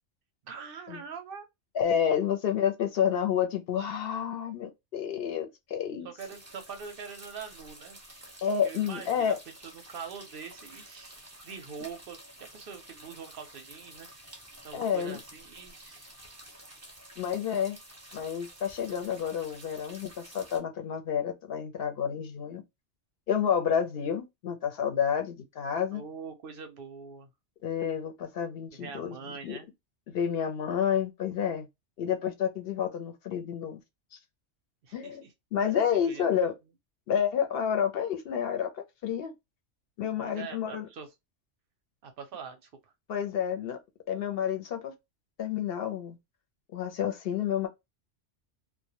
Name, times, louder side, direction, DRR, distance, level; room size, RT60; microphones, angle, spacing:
voice 1, 0.4-1.5 6.0-8.0 8.6-9.4 9.6-14.3 14.6-16.2 25.9-27.3 28.7-29.7 34.8-35.3 35.6-36.2 40.2-41.1 42.0-42.9, right 6 dB, 60° right, 0.6 m, -44 dB
voice 2, 1.7-6.1 8.4-9.4 14.7-15.2 17.2-17.8 18.1-22.6 23.3-26.0 27.6-29.2 29.4-29.6 30.1-31.7 32.0-33.8 34.1-34.2 34.9-35.2 35.5-36.5 37.1-39.3 40.0-40.9 43.1-43.8 44.1-44.9 45.4-46.2 46.7-47.7, left 8 dB, 60° left, 0.7 m, -29 dB
sound 1, 6.2-20.6, right 1 dB, 15° right, 0.6 m, -50 dB
2.1 x 2.1 x 2.7 m
omnidirectional pair, 1.3 m